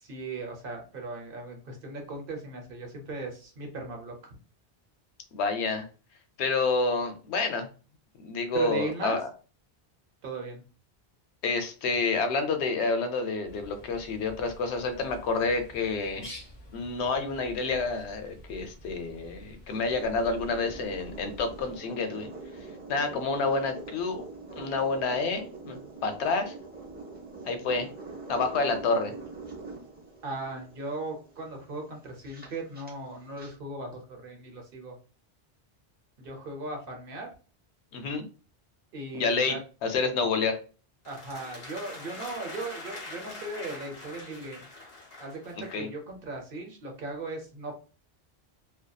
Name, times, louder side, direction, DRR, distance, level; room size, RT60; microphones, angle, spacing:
voice 1, 0.0-4.4 8.5-9.2 10.2-10.6 30.2-34.9 36.2-37.3 38.9-39.6 41.1-44.7 45.2-47.8, right 2 dB, 60° right, 2 dB, 0.8 m, -37 dB
voice 2, 5.3-5.9 6.4-7.7 8.2-9.2 11.4-16.3 16.7-22.3 22.9-24.2 24.6-26.5 27.5-27.9 28.3-29.1 37.9-38.2 39.1-39.6 39.8-40.6 45.7-45.9, left 4 dB, 80° left, 7 dB, 0.8 m, -29 dB
Bird, 13.4-21.8, equal, 30° left, 1.1 m, -48 dB
sound 1, 19.7-33.5, right 3 dB, 10° right, 0.6 m, -44 dB
sound 2, 41.0-45.9, left 2 dB, 60° left, 1.1 m, -44 dB
2.6 x 2.2 x 2.2 m, 0.36 s
omnidirectional pair, 1.1 m